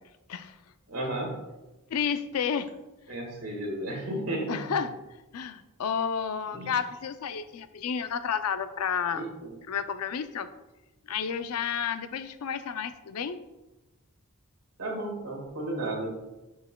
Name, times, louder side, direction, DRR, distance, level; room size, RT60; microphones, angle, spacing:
voice 1, 0.9-1.3 3.1-4.6 6.5-6.7 9.1-9.5 14.8-16.1, right 1 dB, 80° right, 0 dB, 1.8 m, -33 dB
voice 2, 1.9-2.7 4.5-4.9 5.3-9.2 9.7-10.5 11.1-13.4, left 7 dB, 85° left, 11 dB, 0.4 m, -31 dB
6.8 x 6.6 x 2.2 m, 1.0 s
head